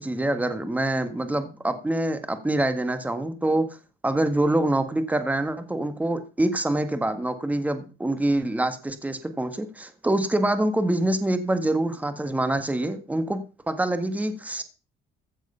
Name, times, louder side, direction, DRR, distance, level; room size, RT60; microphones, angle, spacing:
voice 1, 0.0-3.7 4.0-14.6, right 1 dB, 10° right, 9 dB, 1.7 m, -25 dB
15.0 x 8.0 x 5.7 m, 0.33 s
cardioid pair, 110°, 17 cm